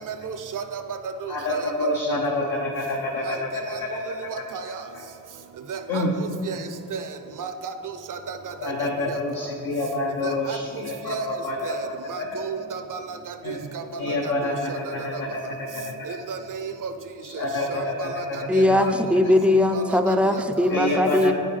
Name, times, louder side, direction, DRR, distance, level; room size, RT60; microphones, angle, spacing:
voice 1, 0.1-0.8 1.2-1.7 3.3-3.4 3.7-3.8 4.3-4.8 5.7-6.0 6.5-6.6 6.9-7.0 7.4-7.7 8.1-8.4 8.6-8.7 10.2-10.6 11.1-11.3 11.6-13.8 14.7-14.8 15.1-15.2 16.1-16.9 17.7-18.9 19.7-19.8, right 6 dB, 55° right, 9 dB, 0.6 m, -34 dB
voice 2, 1.3-3.9 4.2-4.3 4.9-5.0 5.9-6.1 8.6-12.4 13.4-13.6 14.0-15.8 17.2-18.8 20.7-21.3, left 2 dB, 70° left, -2 dB, 0.8 m, -27 dB
voice 3, 18.5-21.3, left 1 dB, 5° right, 7 dB, 0.4 m, -20 dB
9.4 x 5.4 x 3.3 m, 2.6 s
cardioid pair, 55°, 37 cm